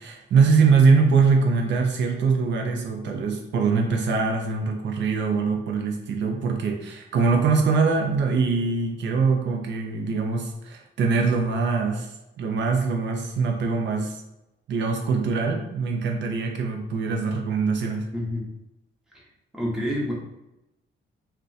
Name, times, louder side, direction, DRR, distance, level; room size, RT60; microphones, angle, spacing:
voice 1, 0.0-12.1 12.4-14.2 14.7-18.0, right 4 dB, 65° right, 2 dB, 0.5 m, -23 dB
voice 2, 18.1-18.4 19.1-19.3 19.5-20.1, equal, 5° right, -5 dB, 0.7 m, -28 dB
2.4 x 2.1 x 4.0 m, 0.92 s
cardioid pair, 150°, 20 cm